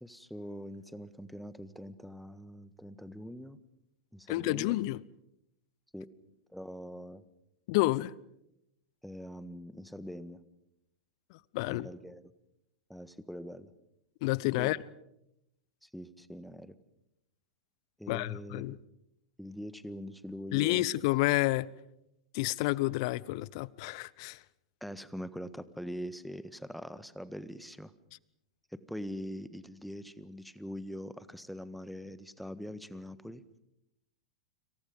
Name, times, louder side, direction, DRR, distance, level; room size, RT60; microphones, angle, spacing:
voice 1, 0.0-3.6 4.1-4.8 5.9-6.1 6.5-7.2 9.0-10.4 11.7-12.2 12.9-13.7 14.6-14.8 15.8-16.7 18.0-18.8 19.4-20.9 24.8-27.9 28.7-33.4, equal, ahead, 1.5 m, -43 dB
voice 2, 4.3-5.0 7.7-8.1 11.5-11.9 14.2-14.8 18.1-18.8 20.5-21.7 22.3-24.4, left 20 dB, 50° left, 0.8 m, -29 dB
29.5 x 26.5 x 5.4 m
figure-of-eight pair, 95°, 3 cm